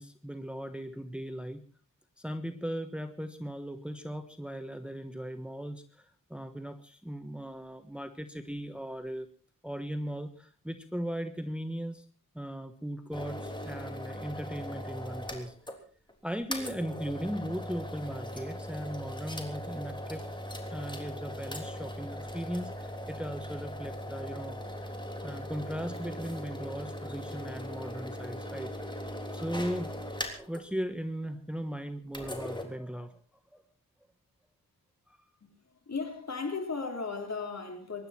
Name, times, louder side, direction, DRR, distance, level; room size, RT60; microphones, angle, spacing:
voice 1, 0.0-1.6 2.2-9.3 9.6-12.0 12.3-15.5 16.2-20.3 20.7-24.9 25.2-29.9 30.4-33.2 33.5-33.6 35.1-35.2, equal, 5° right, 1.3 m, -38 dB
sound 1, 13.1-15.8 16.1-16.2 16.5-30.6 32.1-32.6, equal, 15° left, 3.4 m, -39 dB
voice 2, 35.4-38.1, left 4 dB, 45° left, 3.9 m, -36 dB
24.0 x 11.5 x 4.5 m
wide cardioid pair, 80°, 36 cm